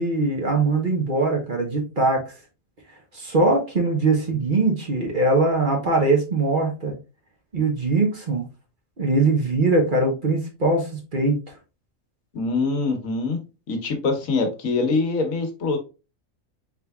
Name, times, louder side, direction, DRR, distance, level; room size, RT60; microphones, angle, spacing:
voice 1, 0.0-2.3 3.1-6.9 7.5-8.5 9.0-11.4, right 3 dB, 40° right, 1 dB, 1.0 m, -21 dB
voice 2, 12.3-13.4 13.7-15.8, left 3 dB, 80° left, 5 dB, 1.3 m, -24 dB
4.3 x 3.7 x 2.3 m, 0.30 s
omnidirectional pair, 1.4 m